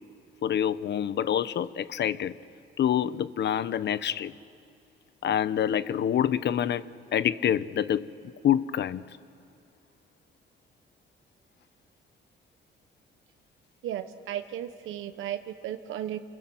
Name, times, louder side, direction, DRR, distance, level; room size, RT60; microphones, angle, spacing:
voice 1, 0.4-2.3 2.8-4.3 5.2-6.9 7.1-8.1 8.4-9.0, left 10 dB, 60° left, 1.0 m, -26 dB
voice 2, 13.8-16.2, right 11 dB, 85° right, 1.1 m, -35 dB
28.5 x 26.5 x 7.8 m
cardioid pair, 90°, 20 cm